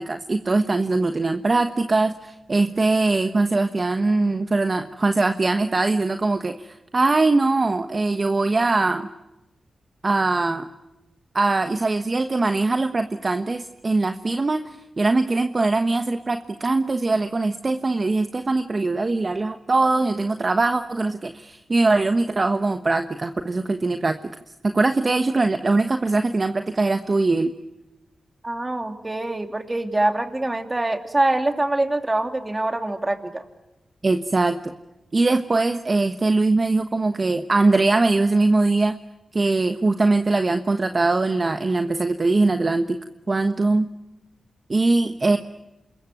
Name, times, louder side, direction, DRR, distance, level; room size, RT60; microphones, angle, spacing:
voice 1, 0.0-9.1 10.0-10.7 11.3-24.2 24.6-27.5 34.0-34.7 35.1-39.0 39.3-43.0 43.3-43.8 44.7-45.4, right 3 dB, 40° right, 8 dB, 1.2 m, -21 dB
voice 2, 28.4-33.4, right 2 dB, 25° right, 6 dB, 3.0 m, -24 dB
27.0 x 22.0 x 9.3 m, 1.0 s
cardioid pair, 55°, 0 cm